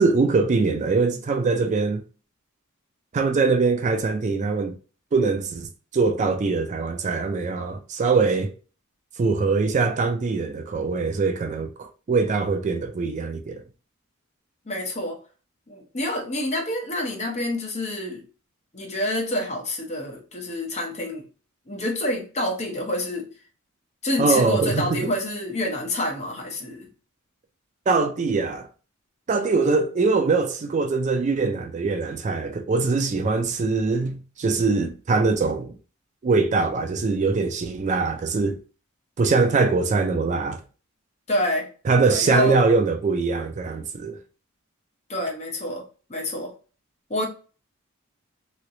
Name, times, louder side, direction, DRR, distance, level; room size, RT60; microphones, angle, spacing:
voice 1, 0.0-2.0 3.1-4.7 5.1-5.7 5.9-8.5 9.2-13.6 24.2-25.1 27.9-28.7 29.3-35.8 36.2-38.6 39.2-40.6 41.9-44.2, right 4 dB, 35° right, 0.3 m, -22 dB
voice 2, 14.7-15.2 15.7-18.2 18.7-21.2 21.7-23.3 24.0-26.9 41.3-41.7 42.0-42.5 45.1-45.8 46.1-46.5 47.1-47.3, left 1 dB, 35° left, 0.9 m, -27 dB
3.1 x 2.9 x 2.6 m
head